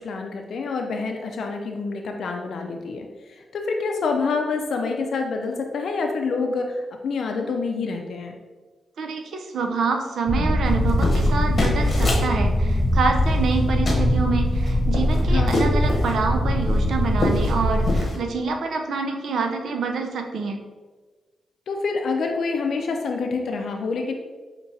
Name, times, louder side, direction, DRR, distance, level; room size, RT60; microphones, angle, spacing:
voice 1, 0.0-8.4 15.2-15.7 21.7-24.1, left 4 dB, 75° left, 3 dB, 0.4 m, -27 dB
voice 2, 9.0-20.6, right 4 dB, 75° right, 4 dB, 0.5 m, -27 dB
sound 1, 10.3-18.0, left 1 dB, 5° left, 0.6 m, -21 dB
sound 2, 10.7-12.3 13.2-13.6 13.9-14.1 14.5-16.2 16.7-16.8 17.1-17.6 17.8-18.2, left 2 dB, 45° left, 1.0 m, -26 dB
5.7 x 2.9 x 2.7 m, 1.3 s
cardioid pair, 80°, 0 cm